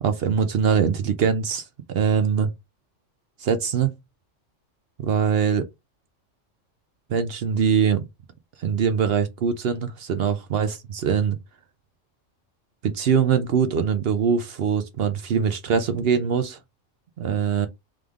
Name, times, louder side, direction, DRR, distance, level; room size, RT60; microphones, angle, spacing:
voice 1, 0.0-2.5 3.4-3.9 5.0-5.7 7.1-8.1 8.6-11.4 12.8-16.6 17.2-17.7, right 6 dB, 60° right, 0.7 m, -22 dB
3.4 x 3.4 x 3.5 m
omnidirectional pair, 1.3 m